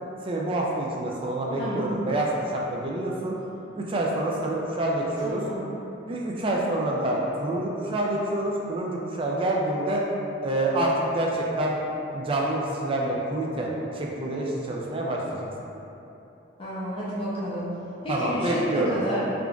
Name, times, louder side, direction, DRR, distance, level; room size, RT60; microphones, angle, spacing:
voice 1, 0.2-3.4 3.7-5.4 6.1-10.0 10.4-11.8 12.1-15.5 18.1-19.0, right 1 dB, 25° right, -2 dB, 0.3 m, -27 dB
voice 2, 1.6-1.9 5.2-5.6 16.6-17.7 18.0-19.2, equal, 25° left, -10 dB, 0.6 m, -30 dB
3.7 x 2.4 x 3.3 m, 2.9 s
head